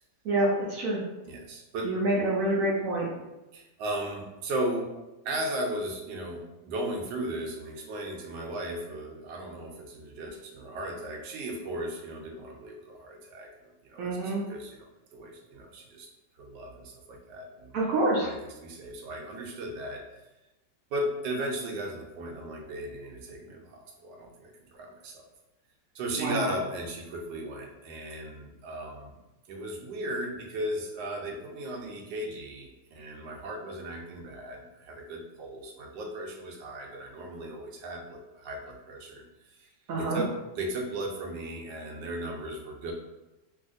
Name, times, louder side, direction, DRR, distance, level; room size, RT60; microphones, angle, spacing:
voice 1, 0.2-1.0 1.8-3.1 14.0-14.4 17.7-18.3 26.2-26.5 39.9-40.2, right 1 dB, 70° right, -4 dB, 0.8 m, -27 dB
voice 2, 1.2-1.9 3.5-4.9 5.2-16.1 16.4-17.9 18.2-18.4 18.6-20.0 20.9-25.2 25.9-29.1 29.5-39.7 40.0-40.3 40.5-42.9, right 1 dB, 85° right, 0 dB, 1.3 m, -36 dB
3.1 x 2.7 x 2.5 m, 1.0 s
omnidirectional pair, 1.9 m